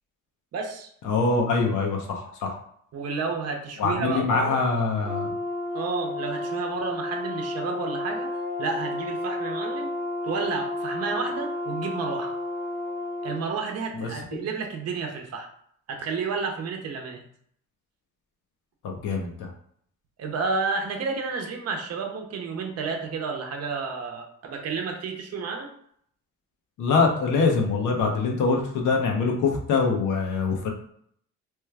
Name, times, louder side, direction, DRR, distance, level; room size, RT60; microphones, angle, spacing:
voice 1, 0.5-0.9 2.9-4.6 5.7-9.9 10.2-12.4 13.2-15.5 15.9-17.2 20.2-25.7, right 4 dB, 55° right, 3 dB, 0.7 m, -31 dB
voice 2, 1.0-2.6 3.8-5.3 13.9-14.1 18.8-19.5 26.8-30.7, left 4 dB, 80° left, 1 dB, 0.8 m, -24 dB
Brass instrument, 5.0-13.4, left 2 dB, 30° right, 1.0 m, -31 dB
3.1 x 2.3 x 3.2 m, 0.66 s
cardioid pair, 90°, 30 cm